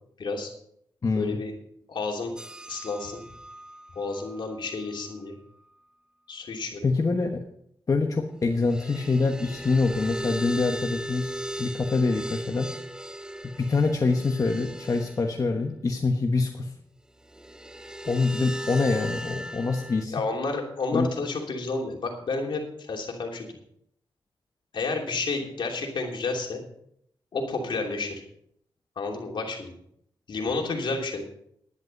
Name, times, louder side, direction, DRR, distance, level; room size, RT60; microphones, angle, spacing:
voice 1, 0.2-0.5 1.1-1.5 1.9-2.3 2.7-3.2 3.9-5.3 6.3-6.9 20.1-23.5 24.7-26.6 27.3-28.2 29.0-29.7 30.3-31.2, left 3 dB, 70° left, 1 dB, 2.9 m, -30 dB
voice 2, 1.0-1.4 6.8-7.4 7.9-11.3 11.6-12.7 13.6-16.7 18.0-20.1 20.9-21.1, left 3 dB, 45° left, 3 dB, 1.2 m, -25 dB
sound 1, 2.4-4.5 4.9-5.0 8.6-15.3 17.3-20.0, right 1 dB, 10° right, 0.7 m, -38 dB
11.0 x 10.5 x 5.3 m, 0.71 s
cardioid pair, 75°, 8 cm